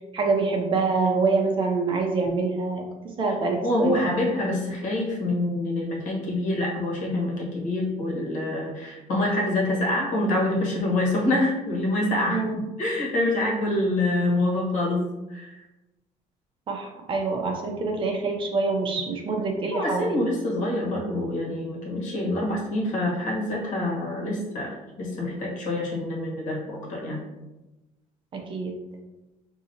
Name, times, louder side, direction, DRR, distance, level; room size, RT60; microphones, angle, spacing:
voice 1, 0.1-2.9 3.2-4.0 12.3-12.5 16.7-20.2 28.3-28.8, right 4 dB, 40° right, 2 dB, 0.7 m, -25 dB
voice 2, 3.6-15.6 19.7-27.2, left 1 dB, 70° left, -3 dB, 1.4 m, -26 dB
5.3 x 2.8 x 2.8 m, 1.0 s
cardioid pair, 155°, 14 cm